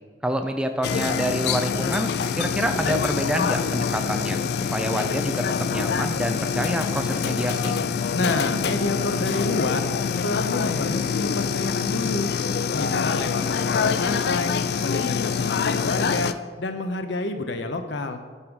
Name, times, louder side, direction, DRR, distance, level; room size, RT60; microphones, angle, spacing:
voice 1, 0.2-4.4 4.7-7.8, right 1 dB, 5° right, 6 dB, 0.4 m, -27 dB
sound 1, 0.8-16.3, left 6 dB, 60° left, 0.3 m, -25 dB
voice 2, 8.1-9.9 10.2-12.3 12.7-14.5 14.8-16.3 16.6-18.2, left 2 dB, 90° left, 7 dB, 0.8 m, -28 dB
8.7 x 5.5 x 4.7 m, 1.5 s
head